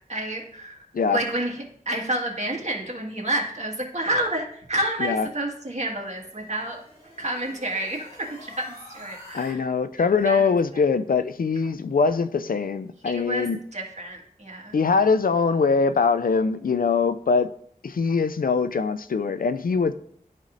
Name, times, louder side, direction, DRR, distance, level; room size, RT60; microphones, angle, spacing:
voice 1, 0.1-6.8 7.2-9.6 10.0-10.4 10.7-10.8 13.1-14.7, right 1 dB, 50° right, -1 dB, 1.7 m, -30 dB
sound 1, 5.6-9.5, left 1 dB, 45° left, 2.8 m, -48 dB
voice 2, 9.3-13.6 14.7-17.5 17.8-19.9, left 5 dB, 70° left, 12 dB, 0.4 m, -22 dB
12.0 x 4.1 x 2.5 m, 0.63 s
wide cardioid pair, 45°, 15 cm